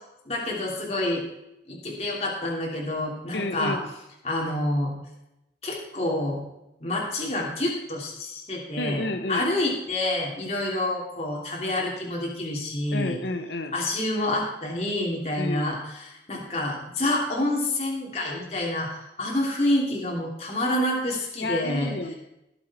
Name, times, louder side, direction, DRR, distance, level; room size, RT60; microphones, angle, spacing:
voice 1, 0.2-1.2 1.7-3.8 4.2-4.9 5.6-6.4 6.8-13.2 13.7-21.9, left 1 dB, 35° left, -2 dB, 3.1 m, -28 dB
voice 2, 3.3-3.9 8.8-9.5 12.9-13.7 15.4-15.8 21.4-22.1, left 2 dB, 80° left, 8 dB, 1.1 m, -30 dB
19.0 x 7.5 x 4.4 m, 0.89 s
head